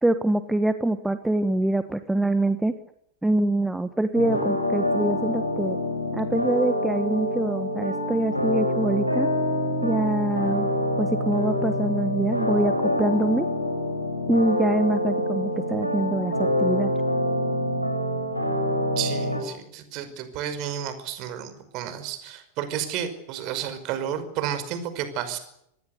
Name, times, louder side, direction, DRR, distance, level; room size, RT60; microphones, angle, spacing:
voice 1, 0.0-2.7 3.2-5.8 6.1-9.3 9.8-10.7 11.0-13.5 14.3-16.9, right 1 dB, 5° right, 10 dB, 1.4 m, -25 dB
sound 1, 4.1-19.4, left 1 dB, 90° right, 5.7 m, -26 dB
voice 2, 19.0-25.4, right 9 dB, 40° right, 10 dB, 5.4 m, -31 dB
26.5 x 20.0 x 8.4 m, 0.75 s
figure-of-eight pair, 90°, 0 cm